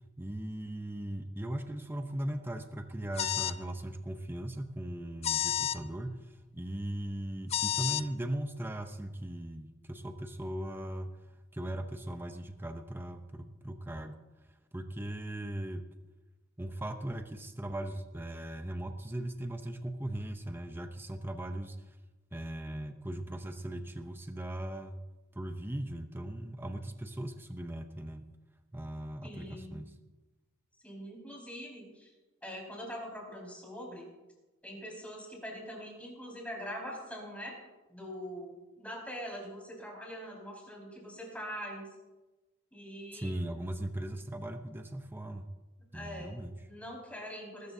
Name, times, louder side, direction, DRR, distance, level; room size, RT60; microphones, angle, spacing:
voice 1, 0.2-14.2 14.5-15.8 16.6-22.0 22.3-25.0 25.3-28.2 28.7-29.9 43.1-45.5 45.9-46.6, right 1 dB, 10° right, 7 dB, 0.7 m, -39 dB
sound 1, 3.2-3.6 5.2-5.8 7.5-8.0, left 10 dB, 30° left, 0.3 m, -30 dB
voice 2, 29.2-29.8 30.8-32.1 32.4-34.0 34.6-37.6 37.9-41.9 42.7-43.3 45.9-46.3 46.7-47.7, equal, 5° left, -2 dB, 4.9 m, -43 dB
20.5 x 13.0 x 2.7 m, 1.1 s
head